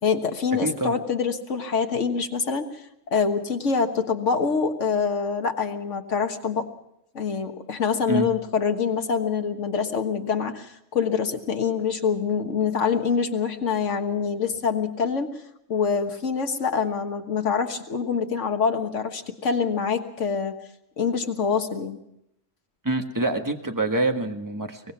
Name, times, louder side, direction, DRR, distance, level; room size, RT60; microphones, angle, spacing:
voice 1, 0.0-2.8 3.1-6.7 7.1-15.4 15.7-20.5 21.0-22.0, left 6 dB, 75° left, 6 dB, 1.8 m, -25 dB
voice 2, 0.6-0.9 8.1-8.3 22.8-24.8, right 2 dB, 15° right, 5 dB, 1.4 m, -25 dB
23.5 x 19.0 x 5.9 m, 0.79 s
omnidirectional pair, 1.3 m